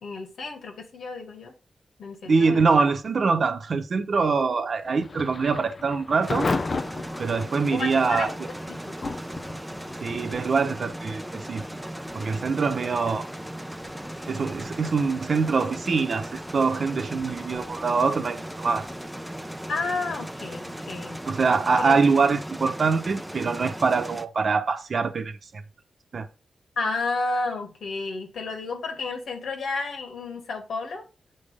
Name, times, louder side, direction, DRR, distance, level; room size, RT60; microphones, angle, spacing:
voice 1, 0.0-1.5 2.0-2.9 7.7-8.4 8.7-9.2 19.7-21.2 21.8-22.1 26.8-31.0, left 3 dB, 85° left, 2.1 m, -32 dB
voice 2, 2.2-6.5 7.2-8.3 10.0-11.6 12.1-13.3 14.3-18.9 21.3-25.6 26.1-26.3, right 4 dB, 55° right, 1.0 m, -24 dB
Thunder / Rain, 4.8-21.5, left 3 dB, 40° left, 0.6 m, -38 dB
sound 1, 6.2-24.3, right 1 dB, 5° right, 0.6 m, -37 dB
7.5 x 5.4 x 3.6 m
wide cardioid pair, 105°, 0 cm